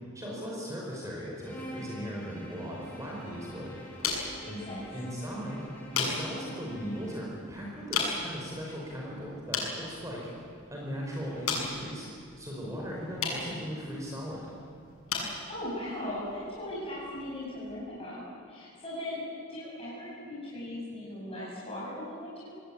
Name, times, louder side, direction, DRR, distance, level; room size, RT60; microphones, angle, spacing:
voice 1, 0.1-3.8 4.5-4.6 4.9-5.6 5.9-10.3 10.7-12.1 12.4-14.5, equal, 15° right, -3 dB, 5.0 m, -38 dB
Bowed string instrument, 1.4-7.4, equal, 10° left, 5.5 m, -47 dB
sound 1, 2.8-17.8, left 4 dB, 90° left, 6.9 m, -38 dB
voice 2, 4.4-4.8 15.1-19.2 19.5-22.5, left 1 dB, 30° left, -7 dB, 7.6 m, -39 dB
27.5 x 19.5 x 8.9 m, 2.3 s
head